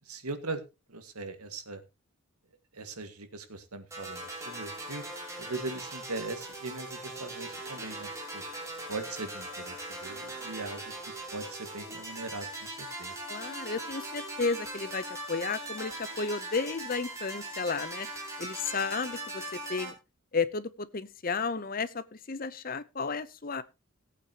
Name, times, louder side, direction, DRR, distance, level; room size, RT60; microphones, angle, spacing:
voice 1, 0.1-0.6 0.9-1.8 2.7-5.0 5.4-8.4 8.9-10.9 11.3-13.2, right 3 dB, 90° right, 1.9 m, -40 dB
sound 1, 3.9-19.9, right 1 dB, 15° right, 3.3 m, -40 dB
voice 2, 13.3-18.1 18.4-19.9 20.3-23.6, left 4 dB, 40° left, 0.7 m, -33 dB
18.5 x 8.5 x 2.9 m
head